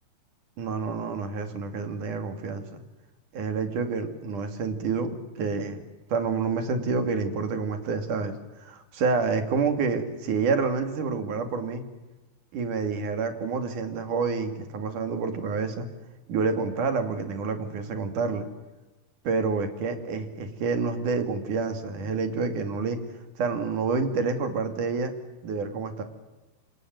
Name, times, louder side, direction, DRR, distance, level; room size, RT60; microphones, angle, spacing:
voice 1, 0.6-2.7 3.3-5.8 6.1-8.3 8.6-11.8 12.5-15.9 16.3-18.5 19.2-23.0 23.4-25.1 25.4-26.0, right 4 dB, 55° right, 7 dB, 3.9 m, -28 dB
28.0 x 27.0 x 7.8 m, 1.1 s
omnidirectional pair, 4.6 m